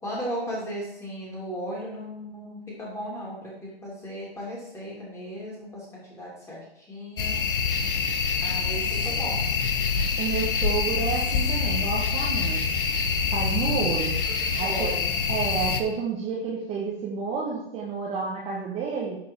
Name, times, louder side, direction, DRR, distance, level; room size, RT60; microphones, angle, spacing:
voice 1, 0.0-7.4 8.4-9.4 13.8-13.9 14.3-15.1, equal, 10° left, -4 dB, 3.0 m, -36 dB
sound 1, 7.2-15.8, left 5 dB, 60° left, 1.1 m, -26 dB
voice 2, 10.2-12.7 13.3-14.1 14.6-14.9 15.3-19.2, right 5 dB, 20° right, -4 dB, 1.3 m, -30 dB
11.0 x 4.6 x 4.6 m, 0.85 s
figure-of-eight pair, 125°, 31 cm